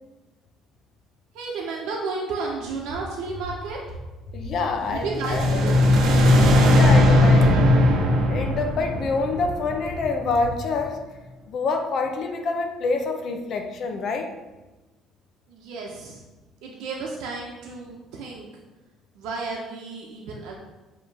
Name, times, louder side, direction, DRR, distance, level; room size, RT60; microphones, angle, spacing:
voice 1, 1.3-3.8 4.9-5.8 15.5-16.2 16.6-18.5 19.2-20.5, right 4 dB, 75° right, -1 dB, 0.9 m, -32 dB
sound 1, 2.6-10.6, left 1 dB, 55° left, 1.0 m, -38 dB
voice 2, 4.3-5.8 6.7-7.6 8.3-11.0 11.5-14.3, left 4 dB, 40° left, 5 dB, 0.6 m, -27 dB
sound 2, 5.0-10.2, left 1 dB, 50° right, 0.9 m, -18 dB
7.4 x 3.1 x 4.7 m, 1.1 s
cardioid pair, 165°, 0 cm